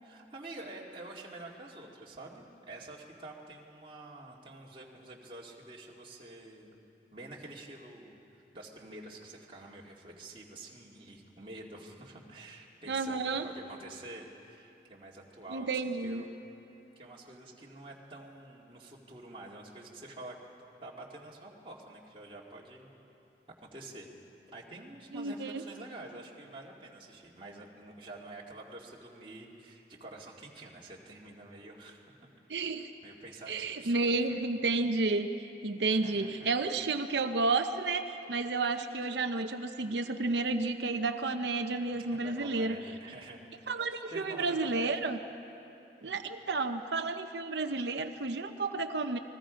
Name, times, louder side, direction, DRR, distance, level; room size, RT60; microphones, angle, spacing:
voice 1, 0.0-6.8 7.1-16.3 17.0-20.4 20.8-22.9 23.6-24.1 24.5-32.1 33.0-34.4 35.9-36.5 41.9-43.4 43.8-45.1 46.0-46.3, right 2 dB, 30° right, -3 dB, 2.2 m, -48 dB
voice 2, 12.9-13.5 15.5-16.2 25.1-25.6 32.5-32.9 33.5-35.3 35.6-42.8 43.7-45.2 46.0-49.2, right 3 dB, 70° right, 7 dB, 0.8 m, -31 dB
29.0 x 21.0 x 5.1 m, 2.9 s
head